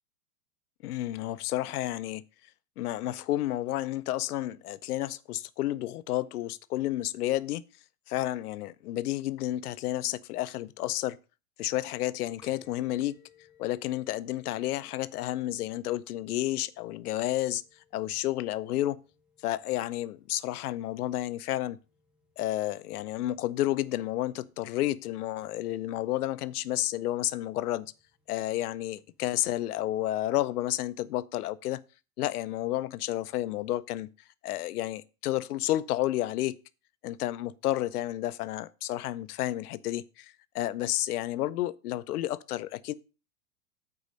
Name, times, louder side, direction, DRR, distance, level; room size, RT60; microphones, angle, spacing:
voice 1, 0.8-2.2 2.8-7.6 8.1-11.2 11.6-13.2 13.6-17.6 17.9-19.0 19.4-21.8 22.4-27.9 28.3-31.8 32.2-34.1 34.4-36.6 37.0-42.9, left 14 dB, 75° left, 0.7 m, -31 dB
sound 1, 12.4-29.8, left 5 dB, ahead, 0.6 m, -65 dB
8.2 x 4.8 x 6.5 m
supercardioid pair, 170°, 46 cm